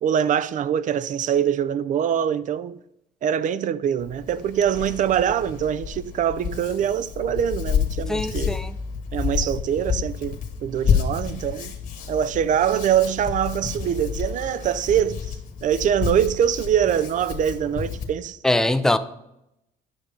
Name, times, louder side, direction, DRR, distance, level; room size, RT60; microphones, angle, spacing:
voice 1, 0.0-2.8 3.2-8.6 9.1-11.8 12.1-18.4, right 9 dB, 50° right, 0.5 m, -23 dB
Hands, 4.0-18.1, left 7 dB, 50° left, 1.6 m, -29 dB
voice 2, 8.1-8.7 18.4-19.0, left 1 dB, 5° left, 0.5 m, -21 dB
9.8 x 5.8 x 5.0 m
cardioid pair, 110°, 17 cm